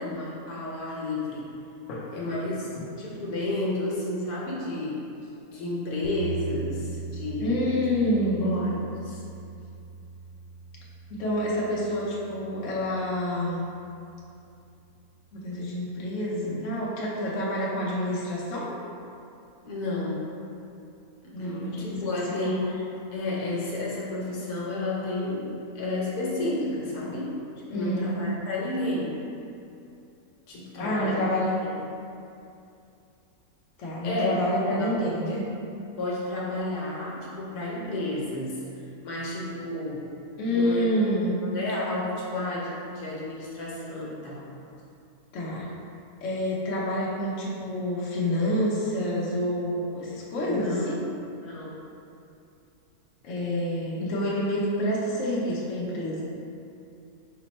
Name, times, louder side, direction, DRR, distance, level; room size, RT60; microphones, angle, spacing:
voice 1, 0.0-1.5 2.1-5.1 5.5-7.7 8.4-8.7 9.0-9.2 19.6-20.3 21.2-27.5 27.7-29.2 30.5-31.2 31.6-31.7 34.0-34.4 34.8-35.5 36.0-38.6 39.0-40.1 40.4-40.9 41.4-44.4 50.5-50.9 51.4-51.8, left 2 dB, 80° left, -5 dB, 1.3 m, -31 dB
sound 1, 6.0-14.1, right 3 dB, 80° right, 1.1 m, -40 dB
voice 2, 7.4-8.6 11.1-13.6 15.3-18.7 21.3-22.5 27.7-28.1 30.7-31.6 33.8-35.5 40.4-41.4 45.3-45.7 46.2-51.0 53.2-56.2, left 1 dB, 60° left, -5 dB, 1.0 m, -28 dB
5.0 x 2.1 x 4.0 m, 2.6 s
omnidirectional pair, 1.6 m